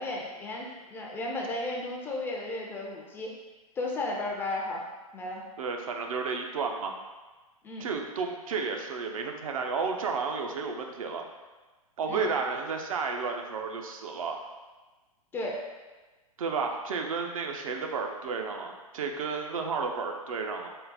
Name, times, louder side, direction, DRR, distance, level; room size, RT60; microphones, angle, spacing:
voice 1, 0.0-3.3 3.8-4.9 5.1-5.4 7.6-7.9 12.1-12.3 15.3-15.6, left 2 dB, 10° left, -2 dB, 0.4 m, -34 dB
voice 2, 5.6-6.9 7.8-11.2 12.0-14.4 16.4-20.7, right 5 dB, 65° right, 3 dB, 0.5 m, -32 dB
3.8 x 2.0 x 4.0 m, 1.2 s
figure-of-eight pair, 115°, 19 cm